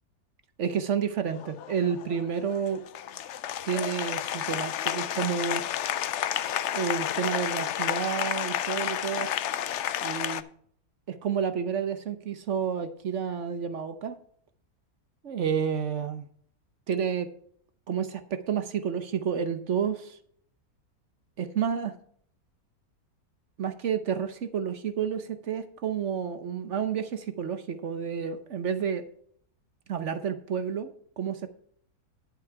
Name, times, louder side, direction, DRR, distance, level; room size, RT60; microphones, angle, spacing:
voice 1, 0.6-2.8 3.6-5.6 6.7-9.3 10.0-10.4 11.1-14.1 15.2-16.3 16.9-17.3 17.9-20.2 21.4-21.9 23.6-29.0 29.9-31.5, right 7 dB, 55° right, 10 dB, 1.1 m, -30 dB
Applause, 1.3-10.4, left 11 dB, 65° left, 0.7 m, -31 dB
10.5 x 8.1 x 4.7 m, 0.62 s
omnidirectional pair, 1.6 m